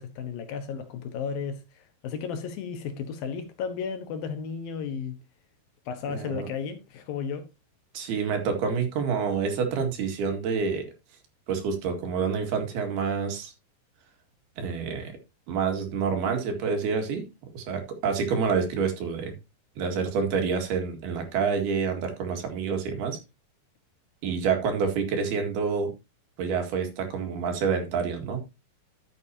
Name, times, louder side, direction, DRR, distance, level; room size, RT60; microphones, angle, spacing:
voice 1, 0.0-5.2 5.9-7.5, left 6 dB, 70° left, 2.7 m, -34 dB
voice 2, 6.1-6.5 7.9-10.9 11.5-13.5 14.6-15.1 15.5-17.2 17.5-19.4 19.8-23.2 24.2-25.9 26.4-28.4, right 5 dB, 70° right, 3.9 m, -28 dB
12.5 x 8.3 x 2.8 m
omnidirectional pair, 4.7 m